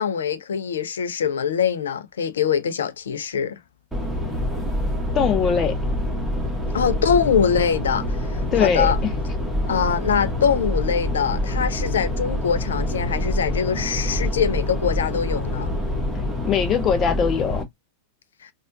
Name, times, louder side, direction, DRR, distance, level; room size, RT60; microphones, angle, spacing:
voice 1, 0.0-3.6 6.7-8.0 8.3-9.0 9.7-15.7, left 7 dB, 65° left, 0.6 m, -23 dB
sound 1, 3.9-17.6, left 1 dB, 5° right, 1.3 m, -26 dB
voice 2, 5.1-5.8 8.5-8.9 16.4-17.6, left 7 dB, 30° left, 0.8 m, -21 dB
4.2 x 2.5 x 2.4 m
figure-of-eight pair, 90°, 0 cm